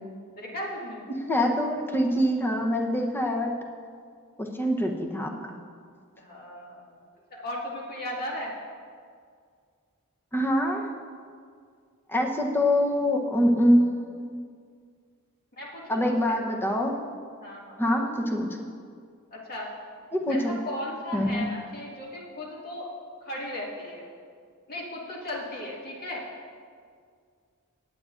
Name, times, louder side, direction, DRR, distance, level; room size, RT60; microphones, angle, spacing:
voice 1, 0.3-1.1 6.2-8.5 15.6-16.4 17.4-18.0 19.3-22.9 23.2-24.1 24.7-26.2, left 1 dB, 45° left, -4 dB, 2.1 m, -37 dB
voice 2, 1.3-3.5 4.4-5.3 10.3-10.9 12.1-14.4 15.9-17.0 17.8-18.7 20.1-20.5 21.1-21.4, equal, 10° left, 1 dB, 0.9 m, -24 dB
18.0 x 8.7 x 2.6 m, 2.1 s
head